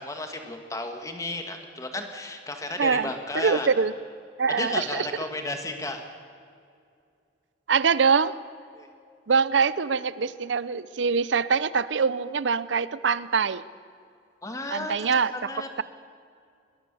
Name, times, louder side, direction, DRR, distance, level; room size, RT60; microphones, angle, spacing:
voice 1, 0.0-3.7 4.6-6.0 8.7-8.9 14.4-15.7, left 2 dB, 20° left, 5 dB, 2.0 m, -33 dB
voice 2, 2.8-3.9 4.4-5.1 7.7-8.3 9.3-13.6 14.7-15.5, right 5 dB, 80° right, 17 dB, 0.6 m, -24 dB
21.0 x 20.5 x 7.0 m, 2.3 s
head